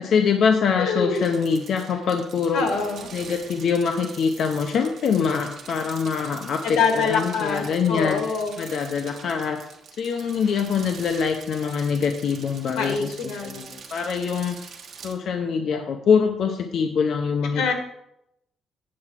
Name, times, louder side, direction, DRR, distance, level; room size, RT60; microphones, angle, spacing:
voice 1, 0.1-2.7 3.1-8.2 8.6-9.6 10.0-14.6 15.0-17.7, left 6 dB, 60° left, 5 dB, 0.7 m, -24 dB
voice 2, 0.8-1.2 2.5-3.1 6.6-8.6 12.7-13.8 17.5-17.7, left 5 dB, 85° left, 5 dB, 1.8 m, -25 dB
sound 1, 1.1-15.1, right 6 dB, 55° right, 1.3 m, -44 dB
8.6 x 4.8 x 7.4 m, 0.80 s
cardioid pair, 130°, 0 cm